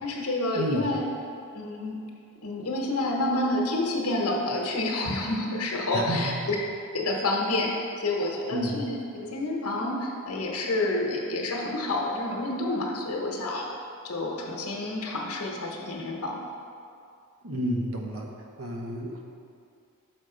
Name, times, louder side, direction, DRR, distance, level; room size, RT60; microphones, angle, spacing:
voice 1, 0.0-1.1 1.5-2.0 2.4-6.6 6.9-7.7 8.0-13.7 14.0-16.4, left 2 dB, 85° left, -1 dB, 1.0 m, -29 dB
voice 2, 0.5-0.9 5.9-6.3 8.5-8.8 17.4-18.3 18.6-19.2, equal, 70° right, 1 dB, 0.9 m, -30 dB
6.3 x 5.2 x 5.0 m, 2.4 s
head